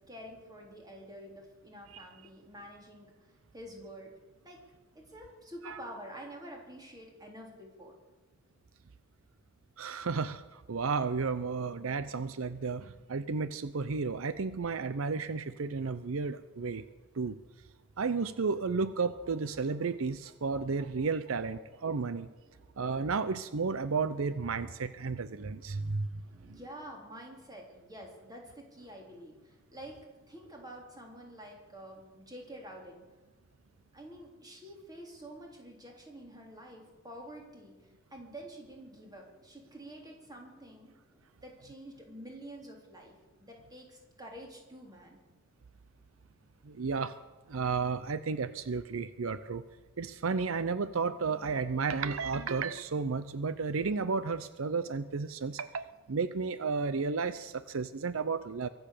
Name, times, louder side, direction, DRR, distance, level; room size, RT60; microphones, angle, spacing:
voice 1, 0.1-3.1 3.5-4.1 4.4-4.6 5.0-7.9 22.4-23.1 24.7-24.9 25.3-30.0 30.3-33.0 33.9-37.7 38.1-45.2, equal, 20° right, 0 dB, 3.6 m, -48 dB
voice 2, 9.8-16.8 17.2-17.4 18.0-22.3 22.8-26.1 26.4-26.6 46.6-47.1 47.5-49.6 50.0-58.7, right 4 dB, 80° right, 13 dB, 0.6 m, -33 dB
23.5 x 8.1 x 6.7 m, 1.3 s
head